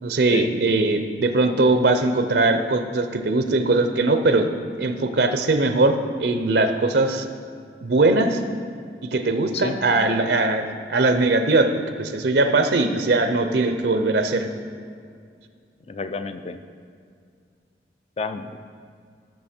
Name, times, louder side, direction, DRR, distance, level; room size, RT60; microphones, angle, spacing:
voice 1, 0.0-4.5 4.8-7.2 7.8-8.4 9.1-11.7 12.0-14.5, right 2 dB, 70° right, 7 dB, 0.6 m, -20 dB
voice 2, 15.9-16.6 18.2-18.6, left 3 dB, 35° left, 9 dB, 0.5 m, -30 dB
14.0 x 6.5 x 4.4 m, 2.2 s
head